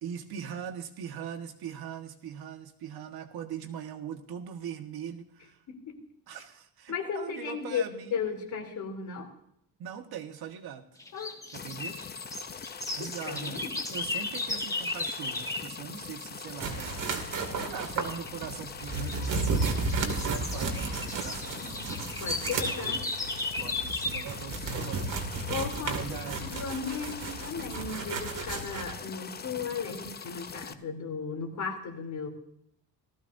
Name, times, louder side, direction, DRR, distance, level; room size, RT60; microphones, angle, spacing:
voice 1, 0.0-5.6 6.3-8.2 9.8-10.8 11.5-12.0 13.0-17.2 17.6-21.9 22.4-22.8 23.6-25.6 25.8-26.6, right 8 dB, 85° right, 5 dB, 1.5 m, -41 dB
voice 2, 6.9-7.8 8.1-9.3 11.1-11.4 13.0-13.7 22.2-23.0 25.5-32.3, left 6 dB, 55° left, 2 dB, 3.2 m, -35 dB
sound 1, 11.0-15.7 18.0-18.3 18.8-24.4, left 2 dB, 10° left, 1.1 m, -35 dB
sound 2, 11.5-30.7, left 6 dB, 25° left, 0.6 m, -42 dB
sound 3, 16.6-28.9, right 3 dB, 60° right, 2.5 m, -34 dB
18.0 x 14.0 x 2.7 m, 0.75 s
cardioid pair, 145°, 36 cm